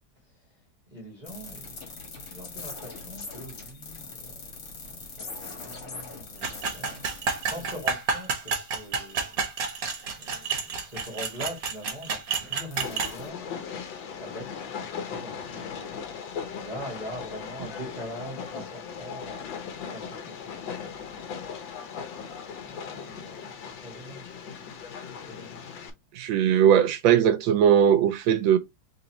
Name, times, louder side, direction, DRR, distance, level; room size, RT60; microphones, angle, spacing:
voice 1, 0.9-9.4 10.1-13.5 14.2-15.7 16.5-21.1 22.6-24.7 25.1-25.7, equal, 25° right, 1.6 m, -43 dB
sound 1, 1.2-13.3, left 3 dB, 55° left, 1.9 m, -44 dB
sound 2, 6.4-13.1, right 5 dB, 55° right, 1.3 m, -30 dB
Train, 12.8-25.9, left 6 dB, 75° left, 1.5 m, -38 dB
voice 2, 26.1-28.6, right 9 dB, 80° right, 1.3 m, -19 dB
3.9 x 3.6 x 2.9 m
omnidirectional pair, 2.1 m